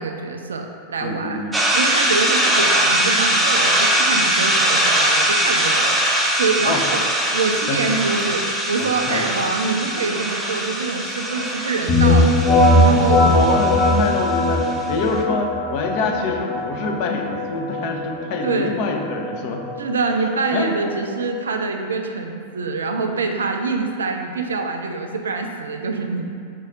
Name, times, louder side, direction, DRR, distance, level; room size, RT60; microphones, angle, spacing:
voice 1, 0.0-1.4 1.7-7.0 7.3-12.4 12.8-13.3 18.4-18.8 19.8-26.3, right 4 dB, 70° right, 4 dB, 0.3 m, -25 dB
voice 2, 1.0-1.5 6.6-6.8 7.7-7.9 8.8-9.2 13.2-19.6 20.5-20.7, left 3 dB, 45° left, 2 dB, 0.4 m, -25 dB
sound 1, 1.5-14.9, right 1 dB, 5° right, 0.5 m, -21 dB
sound 2, 11.9-21.5, left 1 dB, 25° left, 1.0 m, -20 dB
4.5 x 2.4 x 3.5 m, 2.2 s
figure-of-eight pair, 90°, 0 cm